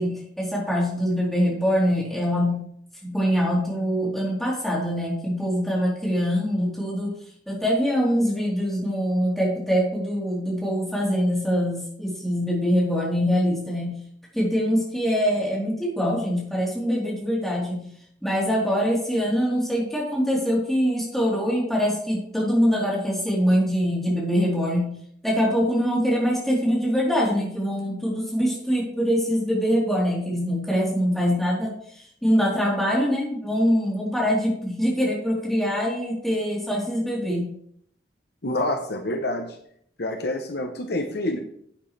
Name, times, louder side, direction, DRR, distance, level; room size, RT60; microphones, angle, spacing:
voice 1, 0.0-2.6 3.0-7.1 7.5-14.0 14.3-17.9 18.2-24.9 25.2-31.7 32.2-37.5 38.5-38.6, equal, ahead, -6 dB, 3.7 m, -23 dB
voice 2, 38.4-39.6 40.0-41.4, left 1 dB, 60° left, 5 dB, 0.9 m, -27 dB
11.0 x 8.9 x 3.3 m, 0.67 s
head